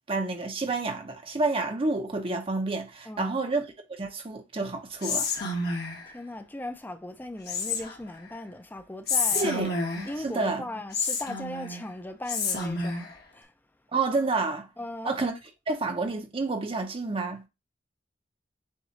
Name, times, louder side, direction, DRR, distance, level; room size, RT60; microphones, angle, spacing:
voice 1, 0.1-5.3 9.3-9.7 10.2-10.6 13.9-14.7 15.0-15.3 15.7-17.5, right 3 dB, 30° right, 0.7 m, -29 dB
voice 2, 3.1-3.4 6.1-9.5 10.0-13.5 14.8-15.1, left 1 dB, 10° left, 0.5 m, -38 dB
Whispering, 5.0-6.1 7.5-8.1 9.1-10.2 10.9-11.8 12.3-13.1, left 4 dB, 60° left, 1.4 m, -29 dB
7.1 x 2.4 x 2.8 m
head